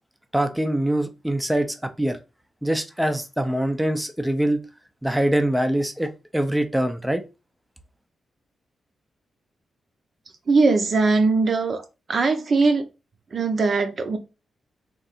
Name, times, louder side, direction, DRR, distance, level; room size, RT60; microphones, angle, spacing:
voice 1, 0.3-2.2 2.6-4.6 5.0-7.2, right 1 dB, 5° right, 0.6 m, -24 dB
voice 2, 10.5-11.8 12.1-12.9 13.3-14.2, right 3 dB, 45° right, 0.7 m, -20 dB
3.7 x 2.6 x 4.1 m
wide cardioid pair, 135°, 0 cm